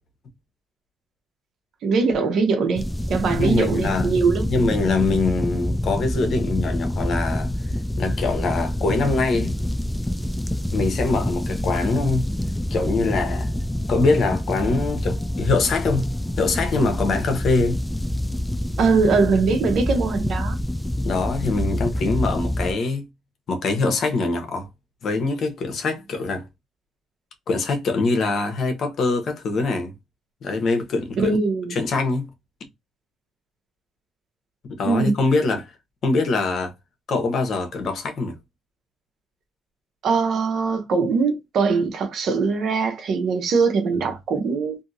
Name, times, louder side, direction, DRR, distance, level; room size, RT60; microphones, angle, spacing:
voice 1, 1.8-4.5 18.8-20.6 31.2-31.8 34.8-35.2 40.0-44.8, right 4 dB, 70° right, 0.8 m, -21 dB
sound 1, 2.8-22.7, left 1 dB, 10° left, 0.3 m, -26 dB
voice 2, 3.3-4.1 4.5-7.5 8.0-9.5 10.7-12.3 12.7-13.5 13.9-16.1 16.4-17.8 21.0-23.1 23.5-24.7 25.0-26.5 27.5-29.9 30.4-31.3 31.7-32.3 34.7-35.7 36.0-36.7 37.1-38.4, left 3 dB, 60° left, 0.9 m, -23 dB
2.7 x 2.7 x 2.6 m
cardioid pair, 90°, 0 cm